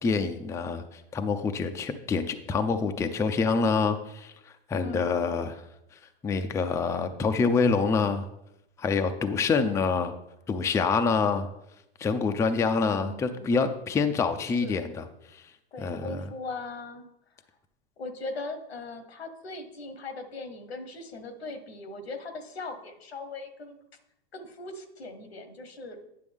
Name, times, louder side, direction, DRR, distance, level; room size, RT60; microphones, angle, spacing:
voice 1, 0.0-4.3 4.7-5.6 6.2-8.3 8.8-10.1 10.5-11.5 12.0-15.0 15.8-16.1, left 5 dB, 10° left, 7 dB, 0.4 m, -26 dB
voice 2, 4.8-5.4 12.8-13.6 14.5-14.9 15.7-17.1 18.0-23.8 24.3-26.0, left 3 dB, 90° left, 8 dB, 1.3 m, -40 dB
9.5 x 6.1 x 3.6 m, 0.83 s
hypercardioid pair, 115°, 30 cm